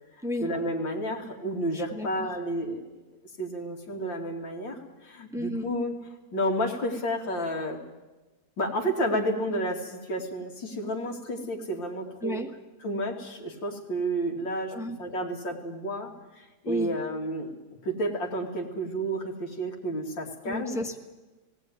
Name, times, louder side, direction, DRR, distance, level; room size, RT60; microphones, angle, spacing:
voice 1, 0.4-2.8 3.4-5.9 6.3-7.8 8.6-12.4 12.8-14.7 15.0-16.1 16.4-17.5 17.8-20.8, right 1 dB, 80° left, 2 dB, 3.0 m, -31 dB
voice 2, 1.7-2.3 5.3-5.7 12.2-12.5 14.7-15.0 16.7-16.9 20.5-21.0, left 1 dB, ahead, 5 dB, 1.0 m, -33 dB
17.5 x 17.0 x 9.4 m, 1.1 s
omnidirectional pair, 2.0 m